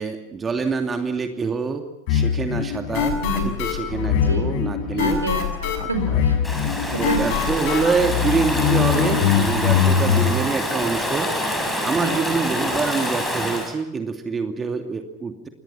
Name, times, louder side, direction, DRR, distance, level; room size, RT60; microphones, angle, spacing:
voice 1, 0.0-5.2 5.8-5.9 7.0-11.3 11.8-15.5, right 4 dB, 15° right, 5 dB, 2.7 m, -26 dB
sound 1, 2.1-10.3, left 8 dB, 45° left, 6.8 m, -22 dB
voice 2, 4.1-4.5 4.9-6.4 6.9-7.5 12.0-12.2, right 2 dB, 80° right, 8 dB, 5.3 m, -28 dB
Stream / Ocean, 6.4-13.7, left 1 dB, 5° left, 7.2 m, -26 dB
28.5 x 23.0 x 5.9 m, 0.84 s
figure-of-eight pair, 90°, 0 cm